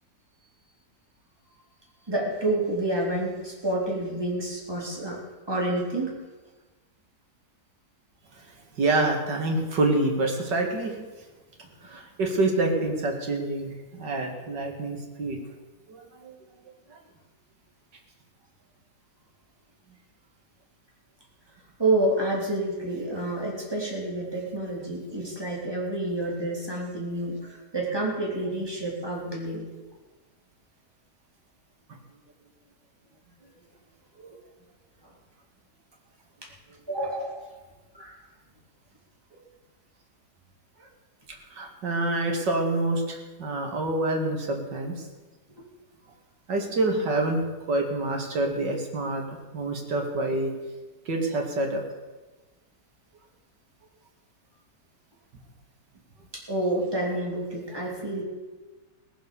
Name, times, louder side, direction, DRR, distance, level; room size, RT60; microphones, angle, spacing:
voice 1, 2.1-5.2 5.5-6.1 21.8-29.6 36.4-36.5 36.9-37.5 37.9-38.2 56.3-58.2, right 1 dB, 15° right, -3 dB, 3.4 m, -29 dB
voice 2, 8.3-11.3 11.8-15.4 15.9-16.4 16.9-17.0 34.2-34.4 36.7-36.8 39.3-39.4 40.8-40.9 41.5-45.1 46.5-50.5 51.1-51.8, right 2 dB, 85° right, 2 dB, 2.8 m, -27 dB
19.0 x 7.6 x 7.0 m, 1.2 s
omnidirectional pair, 1.8 m